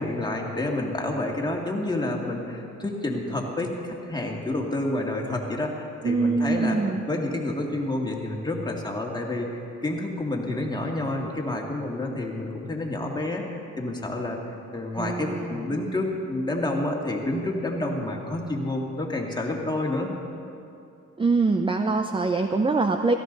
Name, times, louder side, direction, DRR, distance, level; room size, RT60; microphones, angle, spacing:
voice 1, 0.0-6.8 7.1-14.4 14.7-20.1, left 2 dB, 15° left, -1 dB, 2.2 m, -29 dB
voice 2, 6.0-7.0 15.0-15.7 21.2-23.1, right 3 dB, 15° right, 6 dB, 0.6 m, -24 dB
17.5 x 14.0 x 4.1 m, 2.7 s
cardioid pair, 90°, 30 cm